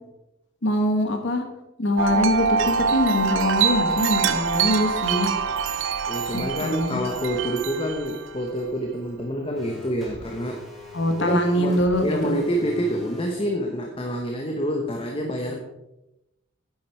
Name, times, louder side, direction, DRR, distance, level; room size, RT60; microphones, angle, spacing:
voice 1, 0.6-1.4 1.8-5.3 6.3-7.0 10.9-12.3, left 1 dB, 65° left, 5 dB, 1.3 m, -23 dB
Wind chime, 2.0-8.5, right 6 dB, 75° right, 0.6 m, -25 dB
voice 2, 6.1-10.6 11.2-15.6, equal, 30° left, 2 dB, 1.0 m, -27 dB
sound 1, 9.5-13.3, left 2 dB, ahead, 2.3 m, -42 dB
9.7 x 7.6 x 4.7 m, 0.92 s
head